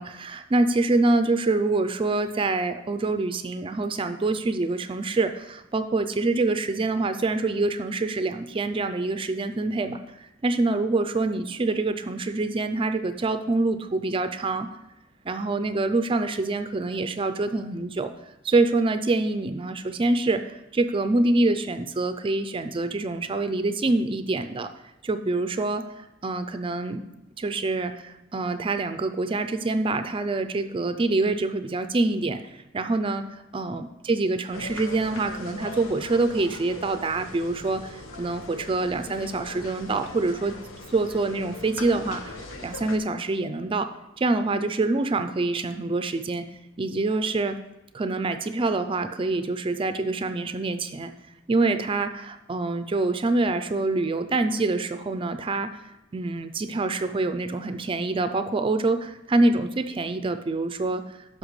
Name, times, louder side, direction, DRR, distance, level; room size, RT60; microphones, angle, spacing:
voice 1, 0.0-14.7 15.2-18.1 18.4-24.7 25.0-27.0 27.4-40.6 40.9-42.2 42.6-46.5 46.8-47.6 47.9-51.1 51.5-61.4, right 2 dB, 25° right, 9 dB, 0.4 m, -26 dB
sound 1, 34.5-43.0, left 3 dB, 90° left, 0.9 m, -40 dB
13.0 x 5.8 x 3.2 m, 0.92 s
head